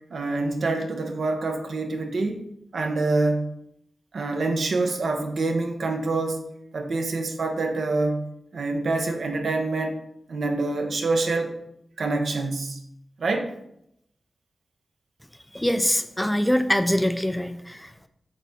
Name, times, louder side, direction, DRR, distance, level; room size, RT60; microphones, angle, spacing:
voice 1, 0.1-2.4 2.7-3.5 4.1-6.4 6.7-8.2 8.5-10.0 10.3-11.5 12.0-12.8 13.2-13.5, right 3 dB, 70° right, 4 dB, 0.9 m, -26 dB
voice 2, 15.5-18.1, equal, 5° left, 10 dB, 0.4 m, -24 dB
8.1 x 3.6 x 4.1 m, 0.77 s
wide cardioid pair, 95°, 0 cm